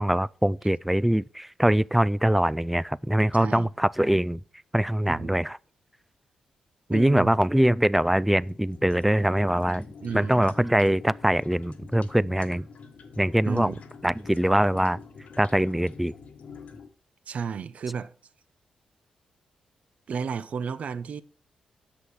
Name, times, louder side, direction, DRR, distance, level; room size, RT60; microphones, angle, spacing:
voice 1, 0.0-4.4 4.7-5.6 6.9-9.9 10.1-12.6 13.2-13.7 14.0-15.0 15.4-16.1, right 1 dB, 5° right, 0.3 m, -23 dB
voice 2, 3.3-3.7 5.1-5.4 6.9-7.4 10.0-10.5 13.4-13.8 17.3-18.1 20.1-21.2, right 6 dB, 60° right, 0.7 m, -32 dB
sound 1, 7.9-16.9, left 5 dB, 65° left, 1.3 m, -46 dB
8.5 x 6.3 x 5.7 m
cardioid pair, 70°, 3 cm